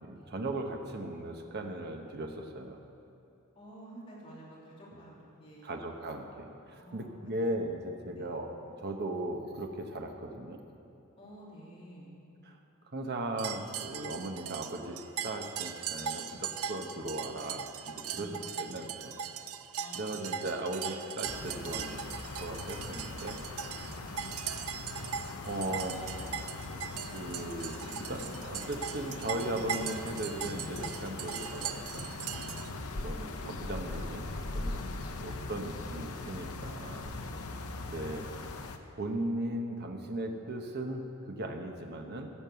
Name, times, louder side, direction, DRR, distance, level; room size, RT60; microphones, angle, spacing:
voice 1, 0.0-2.8 5.6-10.6 12.4-12.6 12.9-17.7 17.9-19.2 19.9-23.4 25.1-26.0 27.1-32.2 33.0-34.8 35.2-37.1 37.9-38.3 39.0-42.3, right 1 dB, 50° right, 3 dB, 1.0 m, -38 dB
voice 2, 3.5-5.7 6.7-7.2 8.1-8.3 11.2-12.1 18.0-18.6 19.7-20.5 23.7-24.1 31.1-31.4 34.6-35.6 37.2-37.7, right 1 dB, 25° left, -7 dB, 3.4 m, -51 dB
sound 1, 13.4-32.7, right 8 dB, 85° right, 0.6 m, -40 dB
sound 2, 21.2-38.8, left 2 dB, 85° left, 0.8 m, -41 dB
14.0 x 7.5 x 6.9 m, 2.7 s
head